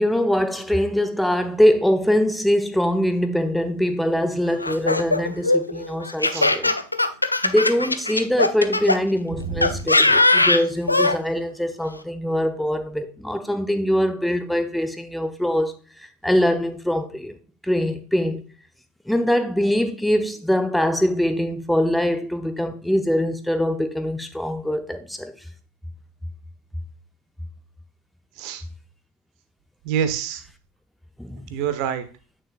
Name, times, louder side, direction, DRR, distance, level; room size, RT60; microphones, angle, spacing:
voice 1, 0.0-6.8 7.4-15.7 16.0-17.4 17.6-18.4 19.1-25.3 31.2-31.5, equal, ahead, 0.7 m, -23 dB
Laughter, 4.6-9.0 9.6-11.2, left 2 dB, 85° left, 0.5 m, -19 dB
voice 2, 9.4-9.8 28.4-28.6 29.8-30.4 31.5-32.0, right 8 dB, 45° right, 1.1 m, -26 dB
9.1 x 6.3 x 2.4 m
figure-of-eight pair, 90°, 0 cm